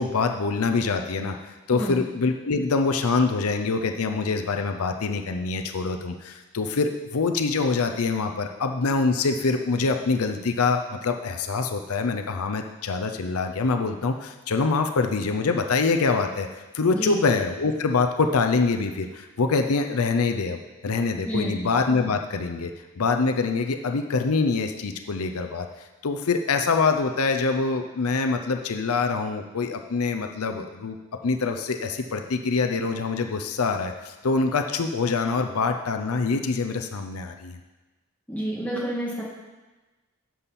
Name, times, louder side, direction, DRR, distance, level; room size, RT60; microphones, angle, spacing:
voice 1, 0.0-1.4 1.7-25.7 26.0-31.0 31.2-37.6, left 4 dB, 80° left, 6 dB, 0.6 m, -25 dB
voice 2, 1.7-2.0 16.9-17.1 21.2-21.6 38.3-39.2, equal, 5° left, -5 dB, 2.0 m, -29 dB
11.0 x 7.1 x 4.2 m, 1.2 s
head